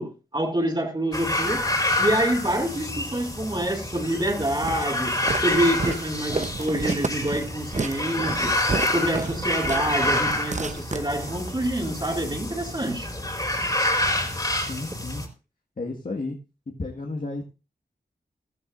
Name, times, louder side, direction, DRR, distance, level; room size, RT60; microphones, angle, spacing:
voice 1, 0.0-1.7 2.0-8.5 8.9-13.1, right 1 dB, 25° right, 2.9 m, -27 dB
sound 1, 1.1-15.3, left 1 dB, 25° left, 3.7 m, -28 dB
Walk footsteps, 4.6-11.6, right 4 dB, 45° right, 0.9 m, -31 dB
voice 2, 14.7-15.2 15.8-16.4 16.8-17.4, left 3 dB, 55° left, 1.8 m, -32 dB
15.5 x 13.0 x 2.6 m
cardioid pair, 40°, 17 cm